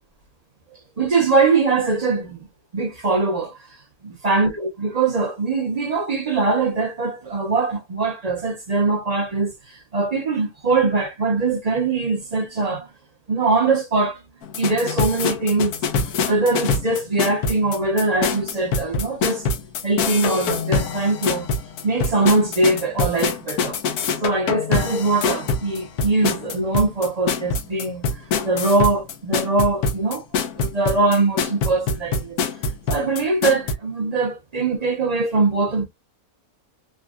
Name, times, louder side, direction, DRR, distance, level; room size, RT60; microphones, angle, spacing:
voice 1, 0.7-2.5 2.7-3.6 4.0-12.9 13.3-14.2 14.6-15.8 16.3-19.5 19.8-21.5 21.8-23.8 24.2-28.1 28.4-30.2 30.6-32.4 32.9-35.9, right 3 dB, 35° right, 0.6 m, -22 dB
sound 1, 14.4-33.7, left 4 dB, 85° left, 1.2 m, -24 dB
3.5 x 2.2 x 2.3 m
omnidirectional pair, 1.6 m